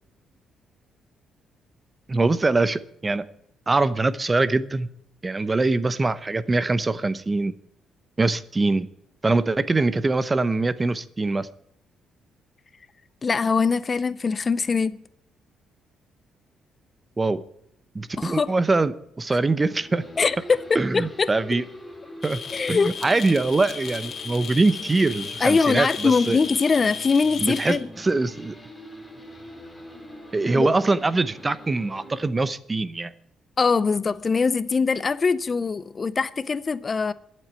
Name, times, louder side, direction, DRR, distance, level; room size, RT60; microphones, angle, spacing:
voice 1, 2.1-3.2 3.7-4.9 5.2-7.6 8.2-8.9 9.2-11.5 17.2-17.4 17.9-18.9 19.2-20.0 20.7-21.6 22.2-22.4 22.7-26.4 27.4-28.5 30.3-33.1, right 3 dB, 25° right, 0.7 m, -23 dB
voice 2, 13.2-15.0 18.2-18.5 20.2-21.6 22.5-23.0 25.4-27.8 30.5-30.7 33.6-37.1, left 4 dB, 35° left, 0.5 m, -22 dB
sound 1, 19.4-32.3, equal, 10° left, 3.0 m, -43 dB
sound 2, 22.2-27.8, left 6 dB, 55° left, 1.8 m, -35 dB
12.0 x 7.6 x 8.1 m
cardioid pair, 90°, 0 cm